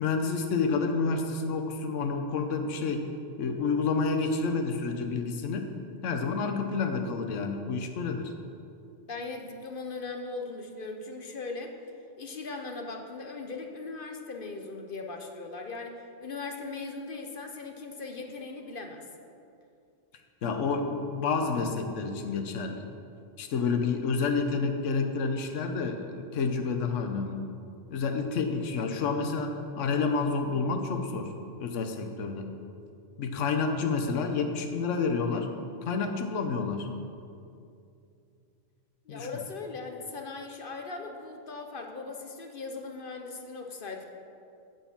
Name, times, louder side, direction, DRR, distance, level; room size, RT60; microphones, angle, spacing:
voice 1, 0.0-3.0 3.4-5.7 6.0-8.3 20.4-22.8 23.4-27.4 27.9-31.3 31.6-32.5 33.2-35.5 35.8-36.9 39.1-39.3, left 4 dB, 75° left, 5 dB, 1.2 m, -29 dB
voice 2, 9.1-11.7 12.2-19.0 39.0-44.1, left 3 dB, 50° left, 4 dB, 0.9 m, -39 dB
9.2 x 6.8 x 7.2 m, 2.5 s
omnidirectional pair, 1.3 m